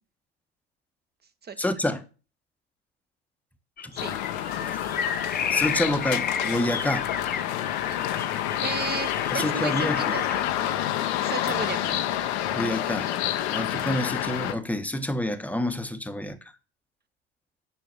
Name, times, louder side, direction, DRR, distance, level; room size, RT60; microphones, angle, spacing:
voice 1, 1.6-2.0 3.8-3.9 4.7-4.8 5.5-7.1 9.3-10.2 12.5-16.4, left 1 dB, 5° left, 1.3 m, -28 dB
sound 1, 3.8-10.5, left 7 dB, 25° left, 0.9 m, -32 dB
sound 2, 4.0-14.5, left 12 dB, 70° left, 1.2 m, -28 dB
voice 2, 4.6-5.2 8.6-10.5 11.2-12.1, right 5 dB, 30° right, 1.5 m, -35 dB
9.3 x 6.2 x 6.4 m
hypercardioid pair, 70°, 34 cm